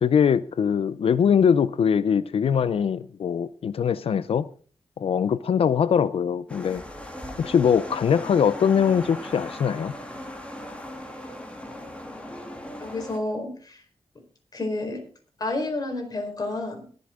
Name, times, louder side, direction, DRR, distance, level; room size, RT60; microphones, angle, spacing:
voice 1, 0.0-4.5 5.0-6.8 7.4-9.9, left 7 dB, 75° left, 0.6 m, -22 dB
sound 1, 6.5-13.2, left 1 dB, 10° left, 2.6 m, -38 dB
voice 2, 12.8-13.8 14.5-15.0 15.4-16.8, left 2 dB, 40° left, 4.2 m, -30 dB
22.0 x 7.8 x 3.7 m
wide cardioid pair, 105°, 10 cm